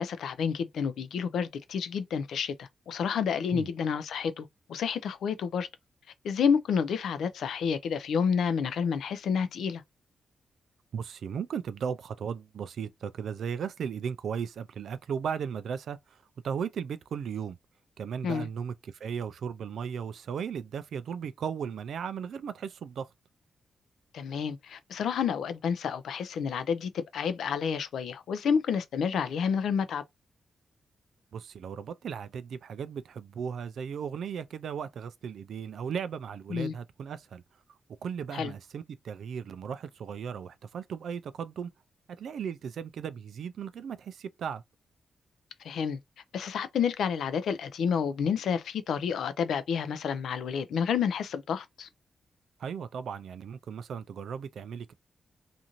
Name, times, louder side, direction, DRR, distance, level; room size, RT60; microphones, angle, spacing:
voice 1, 0.0-5.7 6.2-9.8 18.2-18.5 24.1-30.0 36.5-36.7 38.3-38.5 45.6-46.0 46.3-51.9, left 7 dB, 85° left, 0.4 m, -29 dB
voice 2, 10.9-16.2 16.4-17.6 18.0-23.1 31.3-37.4 38.0-41.7 42.2-44.6 52.6-54.9, right 7 dB, 70° right, 0.3 m, -36 dB
2.5 x 2.5 x 2.9 m
wide cardioid pair, 160°, 0 cm